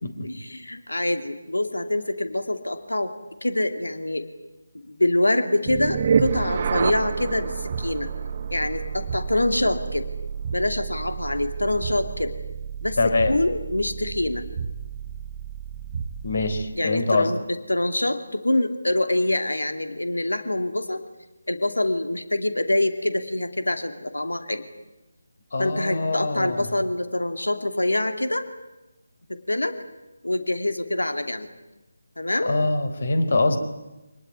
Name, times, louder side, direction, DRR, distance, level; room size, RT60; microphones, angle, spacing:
voice 1, 0.2-3.1 3.4-4.3 4.9-8.1 8.5-10.1 10.5-12.3 12.8-14.4 16.8-21.0 21.5-24.7 25.6-28.4 29.3-29.8 30.2-31.5 32.2-32.5, left 1 dB, 80° left, 8 dB, 2.8 m, -25 dB
sound 1, 5.6-16.8, right 7 dB, 35° right, 1.0 m, -29 dB
voice 2, 13.0-13.3 16.2-17.3 25.5-26.7 32.5-33.6, left 2 dB, 55° left, 10 dB, 3.8 m, -23 dB
26.5 x 19.0 x 9.6 m, 1.0 s
figure-of-eight pair, 155°, 0 cm